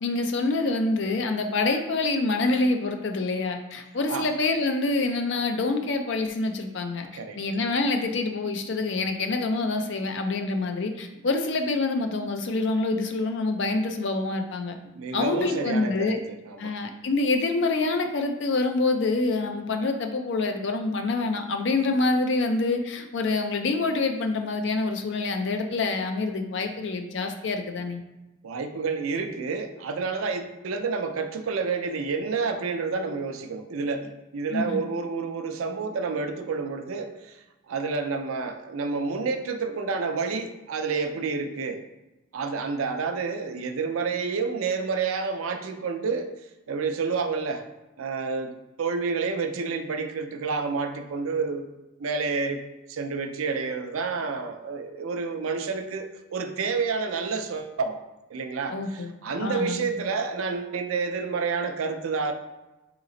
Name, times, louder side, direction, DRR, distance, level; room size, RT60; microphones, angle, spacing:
voice 1, 0.0-7.1 7.4-14.8 15.1-16.2 16.6-28.0 34.5-34.8 58.7-59.1 59.4-59.9, left 3 dB, 60° left, 5 dB, 0.4 m, -26 dB
voice 2, 14.9-16.2 16.5-16.7 28.4-37.4 37.7-41.8 42.3-46.3 46.7-47.7 48.0-51.7 52.0-52.6 52.9-58.0 58.3-62.3, right 4 dB, 85° right, 6 dB, 0.5 m, -29 dB
4.0 x 2.9 x 3.8 m, 1.0 s
head